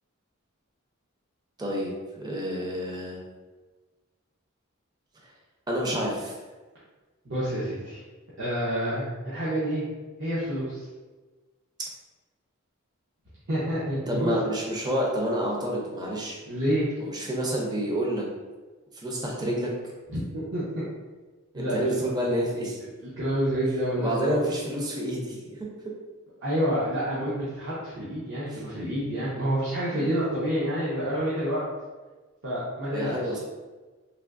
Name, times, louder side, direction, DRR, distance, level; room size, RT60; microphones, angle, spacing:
voice 1, 1.6-3.2 5.7-6.4 14.1-16.4 17.0-18.2 18.9-19.7 21.5-22.8 24.0-25.6 28.5-28.6 29.9-30.2 32.9-33.4, equal, 20° right, -2 dB, 0.5 m, -29 dB
voice 2, 7.2-8.0 8.4-9.8 10.2-10.9 13.5-14.3 16.5-16.9 20.1-20.6 21.5-22.0 23.0-24.5 26.4-31.6 32.4-33.1, equal, 60° right, -10 dB, 0.8 m, -28 dB
3.5 x 2.6 x 2.5 m, 1.3 s
head